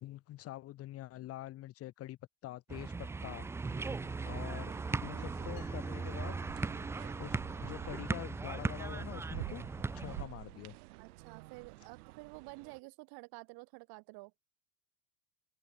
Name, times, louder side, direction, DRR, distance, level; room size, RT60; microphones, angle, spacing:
voice 1, 0.0-3.5 4.3-4.7 5.0-6.4 7.2-9.7 9.9-10.7, left 15 dB, 35° left, 0.7 m, -45 dB
sound 1, 2.7-10.3, right 4 dB, 5° right, 0.3 m, -38 dB
sound 2, 3.6-12.8, right 21 dB, 85° right, 1.0 m, -49 dB
sound 3, 5.6-7.3, left 40 dB or more, 65° left, 7.6 m, -66 dB
voice 2, 11.0-14.3, right 27 dB, 55° right, 1.4 m, -50 dB
open air
supercardioid pair, 120°, 43 cm